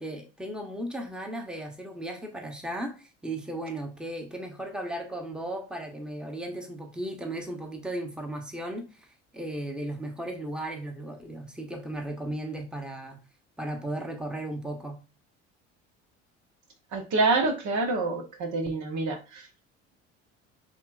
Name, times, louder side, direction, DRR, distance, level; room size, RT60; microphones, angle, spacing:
voice 1, 0.0-13.2 13.6-15.0, right 1 dB, ahead, 1.0 m, -36 dB
voice 2, 16.9-19.5, right 3 dB, 55° right, 1.1 m, -27 dB
7.1 x 3.0 x 2.4 m
hypercardioid pair, 60°, 35 cm